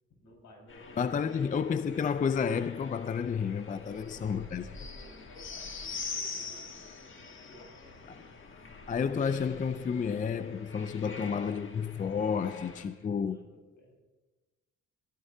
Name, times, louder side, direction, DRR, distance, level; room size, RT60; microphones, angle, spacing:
voice 1, 0.2-1.6 3.8-8.2 12.7-14.0, left 1 dB, 75° left, 4.8 m, -56 dB
sound 1, 0.7-12.8, left 4 dB, 40° left, 1.5 m, -45 dB
voice 2, 1.0-4.7 8.9-13.4, left 6 dB, 25° left, 0.4 m, -31 dB
19.0 x 13.0 x 2.8 m
cardioid pair, 90°, 30 cm